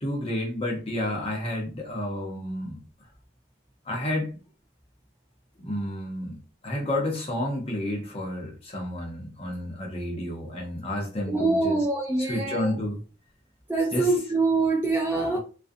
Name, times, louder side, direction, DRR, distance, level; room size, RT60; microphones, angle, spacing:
voice 1, 0.0-2.8 3.9-4.3 5.6-6.4 6.6-11.9 12.2-13.0 13.9-14.1, left 1 dB, 30° left, 0.7 m, -30 dB
voice 2, 11.3-12.7 13.7-15.4, right 3 dB, 10° right, 0.3 m, -24 dB
2.4 x 2.1 x 2.5 m
head